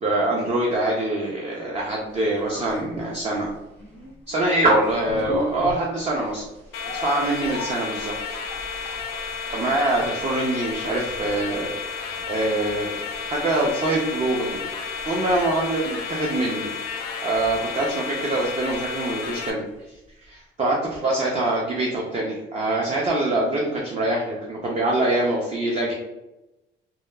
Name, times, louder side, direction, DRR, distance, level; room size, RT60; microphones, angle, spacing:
voice 1, 0.0-3.5 4.3-6.5 6.9-8.4 8.6-8.9 9.5-11.7 12.3-12.9 13.3-14.6 15.0-16.7 17.2-19.6 20.2-25.9, right 2 dB, 30° right, -2 dB, 0.5 m, -24 dB
sound 1, 2.0-20.0 20.3-20.4, right 1 dB, 70° right, 1.4 m, -41 dB
sound 2, 6.7-19.5, left 5 dB, 80° left, 0.4 m, -32 dB
2.9 x 2.2 x 2.2 m, 0.98 s
cardioid pair, 90°, 21 cm